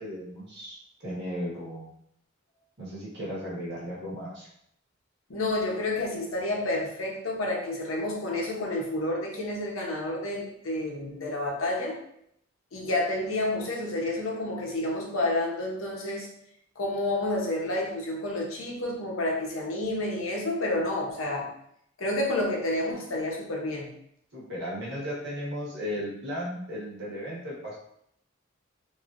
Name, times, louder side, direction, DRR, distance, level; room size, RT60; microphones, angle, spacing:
voice 1, 0.0-1.9 2.8-4.5 24.3-27.8, equal, 60° right, -6 dB, 1.3 m, -35 dB
voice 2, 5.3-12.0 12.7-16.3 16.8-21.5 22.0-23.9, left 1 dB, 85° left, -1 dB, 0.8 m, -29 dB
3.2 x 2.7 x 2.5 m, 0.73 s
head